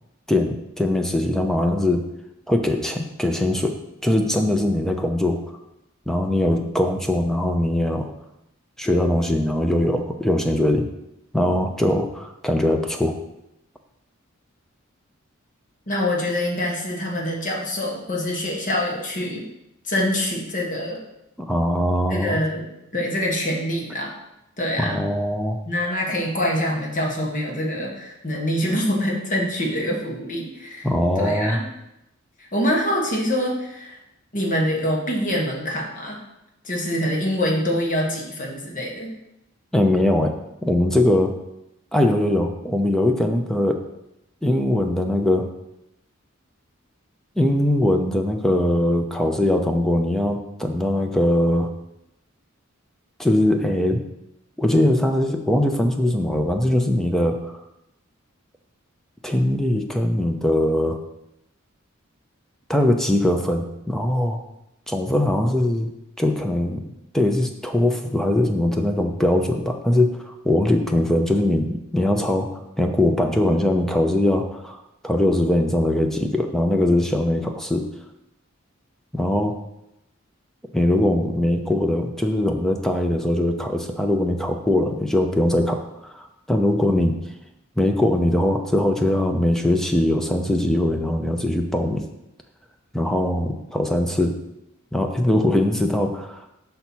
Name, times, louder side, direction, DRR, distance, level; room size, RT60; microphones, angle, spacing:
voice 1, 0.3-2.0 2.5-5.4 6.1-8.1 8.8-10.9 11.3-13.2 21.4-22.4 24.8-25.6 30.8-31.6 39.7-40.3 40.6-41.4 41.9-43.8 44.4-45.5 47.4-51.7 53.2-54.0 54.6-57.6 59.2-61.0 62.7-64.4 64.9-65.9 66.2-66.8 67.1-77.9 79.1-79.6 80.7-87.2 87.8-92.0 92.9-94.4 94.9-96.5, left 1 dB, ahead, 4 dB, 0.5 m, -21 dB
voice 2, 15.9-19.4 19.8-21.0 22.1-22.7 22.9-24.1 24.6-25.0 25.6-30.9 31.2-31.6 32.4-34.0 34.3-36.2 36.6-39.1, left 1 dB, 40° left, -2 dB, 1.4 m, -25 dB
5.6 x 4.2 x 6.1 m, 0.86 s
head